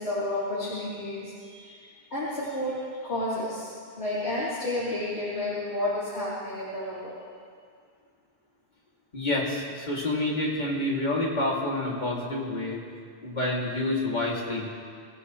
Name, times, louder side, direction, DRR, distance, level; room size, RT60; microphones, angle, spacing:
voice 1, 0.0-1.9 2.1-7.1, left 1 dB, 85° left, -10 dB, 3.6 m, -31 dB
voice 2, 9.1-12.8 13.2-14.7, left 2 dB, 45° left, -4 dB, 2.7 m, -28 dB
25.0 x 15.5 x 3.2 m, 2.1 s
omnidirectional pair, 1.1 m